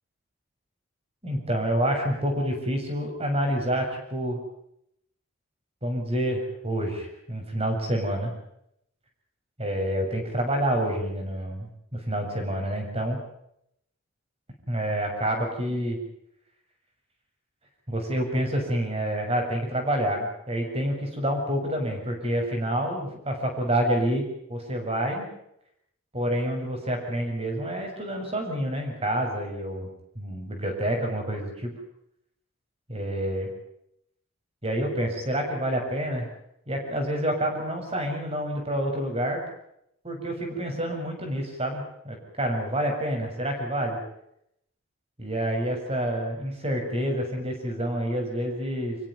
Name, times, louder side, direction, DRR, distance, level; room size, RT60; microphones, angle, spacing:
voice 1, 1.2-4.4 5.8-8.3 9.6-13.2 14.7-16.0 17.9-25.3 26.1-29.9 30.2-31.7 32.9-33.5 34.6-36.3 36.7-39.4 40.0-44.0 45.2-49.0, right 1 dB, 25° right, 3 dB, 7.2 m, -28 dB
26.5 x 16.0 x 9.6 m, 0.76 s
head